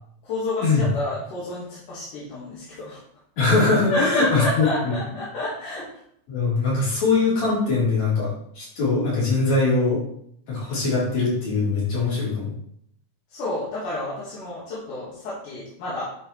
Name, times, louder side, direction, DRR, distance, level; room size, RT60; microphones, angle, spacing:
voice 1, 0.2-3.0 3.9-5.9 13.3-16.0, left 2 dB, 80° left, -7 dB, 3.5 m, -29 dB
voice 2, 3.4-5.0 6.3-10.0 10.5-12.5, left 3 dB, 60° left, -8 dB, 5.2 m, -22 dB
10.0 x 5.9 x 3.3 m, 0.68 s
omnidirectional pair, 3.6 m